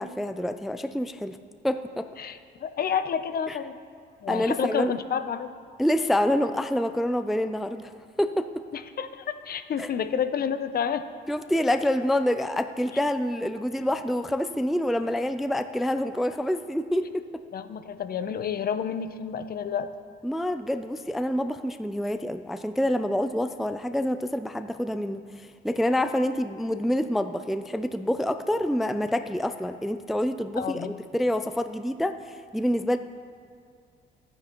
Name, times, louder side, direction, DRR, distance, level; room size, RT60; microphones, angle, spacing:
voice 1, 0.0-1.4 1.6-2.1 3.5-3.6 4.3-4.9 5.8-7.9 8.2-8.6 9.8-9.9 11.3-17.3 20.2-33.0, left 1 dB, ahead, 10 dB, 0.3 m, -27 dB
voice 2, 2.2-3.8 4.2-5.5 8.7-11.0 17.5-19.9 30.6-30.9, left 7 dB, 50° left, 11 dB, 0.6 m, -29 dB
12.5 x 9.7 x 3.0 m, 2.2 s
cardioid pair, 90°, 20 cm